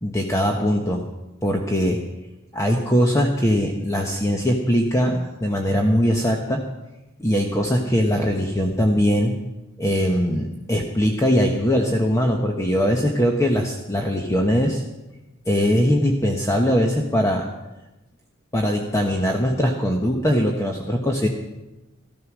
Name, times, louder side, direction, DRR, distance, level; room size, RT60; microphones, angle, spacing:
voice 1, 0.0-1.0 1.4-2.0 2.5-6.6 7.2-9.3 9.8-14.8 15.5-17.5 18.5-21.3, equal, 15° left, 1 dB, 1.1 m, -21 dB
14.5 x 13.5 x 6.2 m, 1.0 s
head